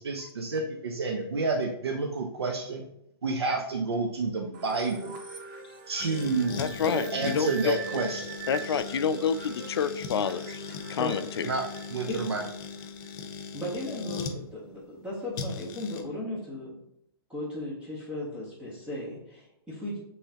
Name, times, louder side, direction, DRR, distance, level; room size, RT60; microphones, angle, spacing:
voice 1, 0.0-2.9 3.2-5.2 5.9-6.6 7.1-8.4 11.4-11.6 11.9-12.4, right 3 dB, 90° right, 2 dB, 0.7 m, -29 dB
sound 1, 4.5-13.1, right 5 dB, 50° right, 0.9 m, -43 dB
sound 2, 6.0-14.4 15.3-16.0, left 5 dB, 50° left, 0.8 m, -39 dB
voice 2, 6.6-7.8 8.5-11.5, left 7 dB, 80° left, 13 dB, 0.4 m, -29 dB
voice 3, 13.5-16.8 17.3-20.0, left 1 dB, 10° right, -8 dB, 1.5 m, -36 dB
5.5 x 3.2 x 2.9 m, 0.77 s
hypercardioid pair, 135°, 13 cm